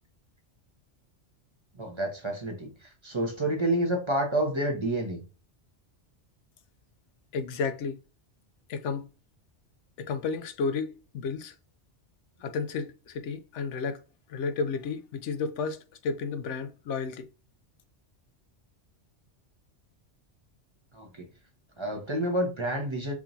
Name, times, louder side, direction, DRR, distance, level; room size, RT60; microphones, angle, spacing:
voice 1, 1.8-5.2 20.9-21.3 21.8-23.1, right 1 dB, 25° right, 0.9 m, -29 dB
voice 2, 7.3-8.0 8.7-9.1 10.0-11.5 12.4-14.0 14.3-17.3, left 5 dB, 85° left, 0.9 m, -32 dB
4.8 x 2.8 x 2.6 m
omnidirectional pair, 1.2 m